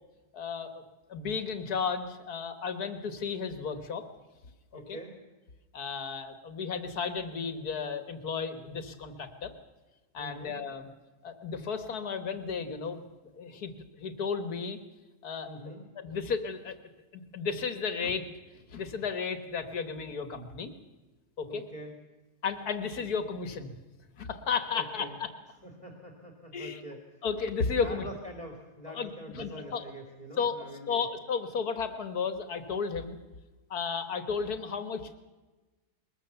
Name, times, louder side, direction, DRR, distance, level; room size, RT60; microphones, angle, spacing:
voice 1, 0.3-0.8 1.1-4.1 4.9-5.0 5.7-9.5 10.1-10.9 11.2-13.0 13.3-13.7 14.0-14.8 15.2-16.8 17.1-18.3 18.5-20.7 21.4-21.6 22.4-23.7 24.2-25.3 26.5-26.8 27.2-28.1 28.9-29.8 30.4-30.6 30.9-33.2 33.7-35.2, left 5 dB, 70° left, 9 dB, 2.1 m, -33 dB
voice 2, 4.7-5.1 10.2-10.6 15.4-15.8 21.5-22.0 24.7-25.2 25.6-27.2 27.7-31.1, equal, 25° left, 2 dB, 2.5 m, -44 dB
21.5 x 21.0 x 7.0 m, 1.2 s
omnidirectional pair, 1.7 m